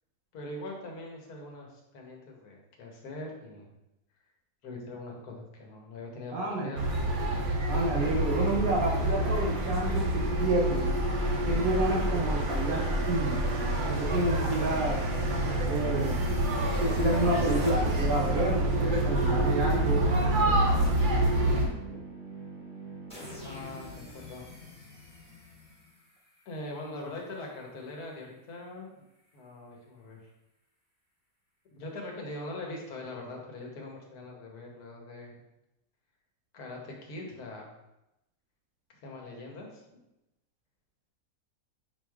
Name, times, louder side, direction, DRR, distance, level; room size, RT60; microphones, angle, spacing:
voice 1, 0.3-3.7 4.6-6.8 23.4-24.6 26.5-28.9 29.3-30.3 31.8-35.4 36.5-37.8 39.0-40.0, left 2 dB, 80° left, 0 dB, 1.5 m, -42 dB
voice 2, 6.3-6.7 7.7-10.9 11.5-13.4 13.8-15.0 15.7-16.2 16.8-20.1, right 2 dB, 70° right, -1 dB, 1.4 m, -29 dB
sound 1, 6.8-21.7, right 1 dB, 50° right, 0.6 m, -27 dB
sound 2, 16.0-26.9, right 1 dB, 5° left, 1.0 m, -44 dB
4.8 x 4.7 x 2.3 m, 0.89 s
omnidirectional pair, 1.6 m